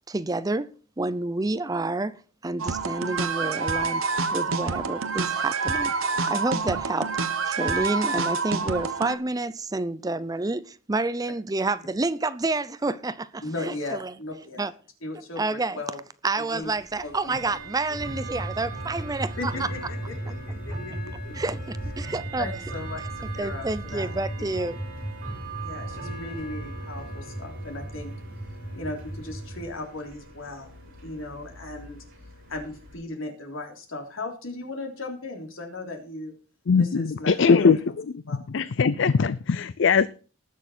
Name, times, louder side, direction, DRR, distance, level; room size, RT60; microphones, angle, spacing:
voice 1, 0.1-0.7 1.0-4.0 4.3-5.9 6.3-7.1 7.5-14.1 14.6-14.7 15.4-15.8 16.2-19.7 21.3-22.5 23.4-24.8, right 2 dB, 20° right, 0.5 m, -29 dB
sound 1, 2.6-9.2, right 4 dB, 85° right, 1.2 m, -27 dB
voice 2, 13.4-14.7 15.0-16.0 16.4-16.7 17.0-17.3 19.4-21.4 22.4-24.7 25.6-28.1 28.7-30.7 31.0-32.0 32.5-36.3 36.8-37.7 38.3-38.4, left 2 dB, 80° left, 3.3 m, -37 dB
Bell / Tick-tock, 16.6-32.9, right 3 dB, 45° right, 7.5 m, -42 dB
sound 2, 17.9-29.6, right 1 dB, 5° left, 1.7 m, -36 dB
voice 3, 36.7-37.8 38.1-38.2 38.5-40.1, left 5 dB, 60° left, 0.5 m, -20 dB
19.5 x 6.5 x 4.3 m
head